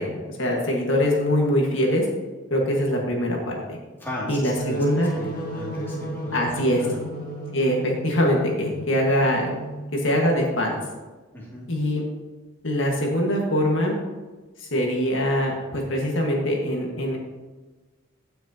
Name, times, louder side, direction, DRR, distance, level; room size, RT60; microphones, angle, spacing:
voice 1, 0.0-2.1 2.5-3.8 4.3-5.1 6.3-6.9 7.5-9.6 9.9-10.8 11.7-12.0 12.6-13.9 14.6-17.2, equal, 65° left, -1 dB, 1.7 m, -23 dB
voice 2, 4.0-4.4 4.7-6.4 6.8-7.0 11.3-11.7, left 1 dB, 10° left, -6 dB, 2.5 m, -35 dB
sound 1, 4.6-10.1, equal, 40° left, 1.9 m, -34 dB
16.0 x 6.2 x 2.9 m, 1.2 s
head